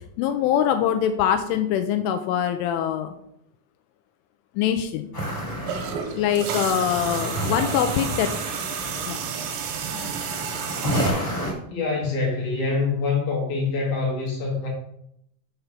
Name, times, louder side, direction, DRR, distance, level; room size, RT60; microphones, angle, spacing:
voice 1, 0.2-3.1 4.6-5.1 6.1-8.3 9.1-9.2 9.9-10.1, left 9 dB, 85° left, 8 dB, 2.9 m, -23 dB
Skateboard Roll Stereo, 5.1-11.5, equal, 25° left, 2.7 m, -30 dB
sound 1, 5.7-11.1, right 7 dB, 75° right, 2.9 m, -31 dB
voice 2, 11.7-14.7, left 4 dB, 55° left, -1 dB, 2.2 m, -25 dB
6.8 x 6.6 x 5.9 m, 0.74 s
omnidirectional pair, 6.0 m